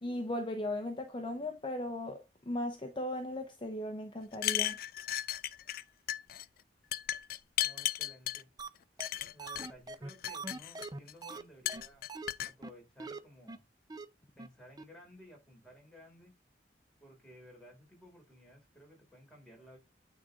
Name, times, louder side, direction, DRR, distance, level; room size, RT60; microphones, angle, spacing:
voice 1, 0.0-4.8, left 1 dB, 30° left, 0.8 m, -37 dB
sound 1, 4.3-5.8 6.1-6.4 6.9-8.4 9.0-9.7 10.1-11.1 11.6-12.5, left 13 dB, 55° left, 0.3 m, -35 dB
voice 2, 7.6-8.5 9.3-12.1 12.4-13.6 14.3-16.3 17.0-19.8, equal, 5° left, 3.4 m, -56 dB
sound 2, 8.6-8.7 9.0-9.1 9.4-11.4 11.7-11.8 12.1-12.3 12.6-12.7 13.0-13.2 13.5-13.6 13.9-14.0 14.4-14.5 14.8-14.9, right 3 dB, 25° right, 0.5 m, -42 dB
9.2 x 3.7 x 3.7 m
head